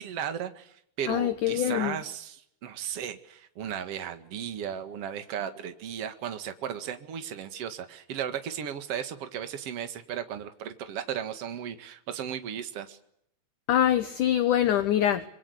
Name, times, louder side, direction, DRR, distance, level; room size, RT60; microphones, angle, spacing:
voice 1, 0.0-13.0, right 9 dB, 45° right, 8 dB, 2.3 m, -35 dB
voice 2, 1.1-2.0 13.7-15.2, left 11 dB, 65° left, 10 dB, 2.2 m, -24 dB
26.5 x 22.5 x 8.3 m, 0.74 s
omnidirectional pair, 4.7 m